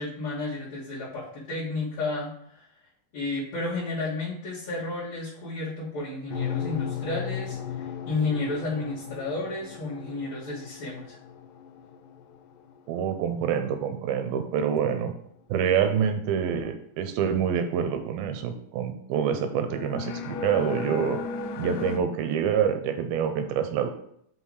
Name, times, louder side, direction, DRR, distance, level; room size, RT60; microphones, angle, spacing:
voice 1, 0.0-2.7 3.1-11.2, left 2 dB, 50° left, -10 dB, 2.7 m, -32 dB
sound 1, 6.3-12.8 13.5-13.7 19.7-22.0, left 7 dB, 85° left, 1.9 m, -35 dB
voice 2, 12.9-15.1 15.5-21.2 21.6-23.9, right 8 dB, 80° right, 7 dB, 2.3 m, -26 dB
5.8 x 5.6 x 4.7 m, 0.69 s
omnidirectional pair, 4.6 m